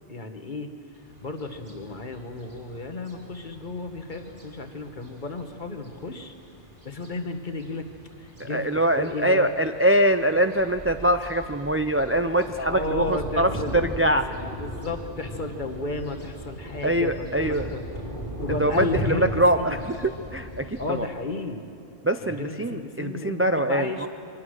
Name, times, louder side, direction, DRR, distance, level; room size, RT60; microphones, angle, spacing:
voice 1, 0.1-0.7 1.2-6.3 6.8-7.9 8.2-8.7 8.9-9.5 12.6-13.8 14.0-14.2 14.6-17.8 18.4-19.8 20.8-21.6 22.2-24.1, left 2 dB, 50° left, 6 dB, 1.5 m, -33 dB
sound 1, 0.9-20.9, equal, 50° right, 3.8 m, -38 dB
voice 2, 8.4-14.2 16.8-17.7 18.6-21.1 22.0-24.1, right 1 dB, 20° right, 8 dB, 0.3 m, -23 dB
24.0 x 19.0 x 6.5 m, 2.5 s
omnidirectional pair, 1.1 m